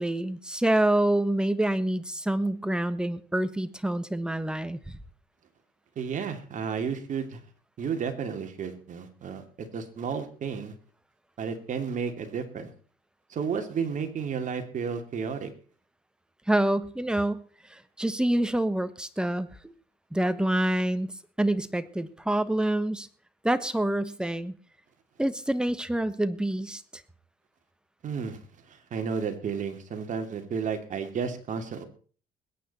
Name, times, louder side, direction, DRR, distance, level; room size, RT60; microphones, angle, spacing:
voice 1, 0.0-5.0 16.5-17.4 17.7-19.5 20.1-21.1 21.4-23.1 23.4-24.5 25.2-26.8, right 1 dB, 5° right, 12 dB, 1.2 m, -27 dB
voice 2, 6.0-7.4 7.8-10.7 11.4-12.7 13.3-15.5 28.0-28.4 28.7-31.8, right 6 dB, 50° right, 6 dB, 2.7 m, -32 dB
21.0 x 9.3 x 4.3 m, 0.41 s
cardioid pair, 110°, 17 cm